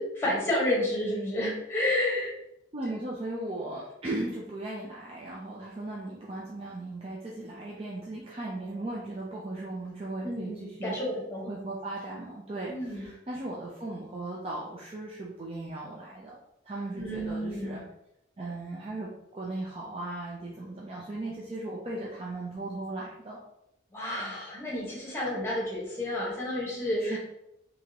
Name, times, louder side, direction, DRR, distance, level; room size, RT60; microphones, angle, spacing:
voice 1, 0.0-2.3 10.2-11.5 12.7-13.1 17.0-17.8 23.9-27.2, left 1 dB, 15° left, -5 dB, 1.2 m, -30 dB
voice 2, 2.7-11.0 11.5-16.4 16.6-17.8 18.4-23.4 27.0-27.2, right 2 dB, 30° right, -4 dB, 0.5 m, -37 dB
3.7 x 3.0 x 2.8 m, 0.84 s
head